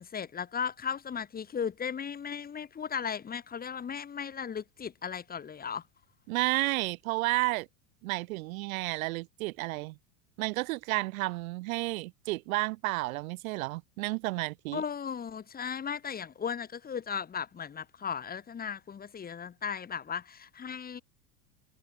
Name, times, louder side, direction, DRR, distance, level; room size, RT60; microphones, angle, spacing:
voice 1, 0.0-5.8 14.7-21.0, left 7 dB, 20° left, 2.5 m, -36 dB
voice 2, 6.3-7.7 8.0-10.0 10.4-14.8, right 21 dB, 70° right, 2.8 m, -31 dB
supercardioid pair, 130°, 43 cm